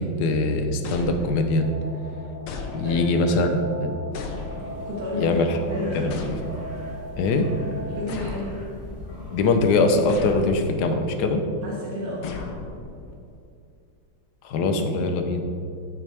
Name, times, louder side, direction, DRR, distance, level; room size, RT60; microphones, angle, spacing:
voice 1, 0.0-1.7 2.7-3.9 5.2-5.6 5.9-6.1 7.2-7.5 9.3-11.4 14.4-15.4, left 3 dB, 60° left, 5 dB, 1.2 m, -22 dB
sound 1, 0.8-1.7 2.5-3.3 4.1-5.0 6.1-6.9 8.1-9.1 10.1-10.9 12.2-13.1, left 4 dB, 90° left, 1.8 m, -36 dB
sound 2, 1.6-8.1, right 1 dB, 55° right, 1.7 m, -39 dB
voice 2, 2.7-3.0 4.9-5.4 5.7-6.2 7.9-8.5 11.6-12.3, left 1 dB, 90° right, -5 dB, 2.4 m, -31 dB
sound 3, 4.1-10.3, left 2 dB, 30° left, 2.3 m, -40 dB
13.0 x 6.5 x 3.4 m, 2.5 s
omnidirectional pair, 2.3 m